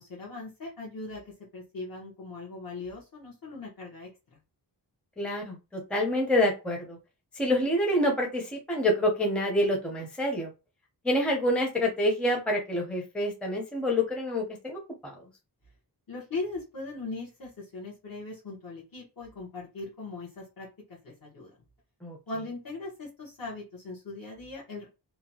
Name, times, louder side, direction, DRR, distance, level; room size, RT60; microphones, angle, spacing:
voice 1, 0.0-4.4 16.1-21.5 22.3-24.9, left 3 dB, 55° left, -5 dB, 1.1 m, -39 dB
voice 2, 5.2-7.0 7.4-10.5 11.0-15.2 22.0-22.2, left 1 dB, 5° left, 1 dB, 0.6 m, -27 dB
2.7 x 2.2 x 2.7 m, 0.28 s
wide cardioid pair, 105°, 42 cm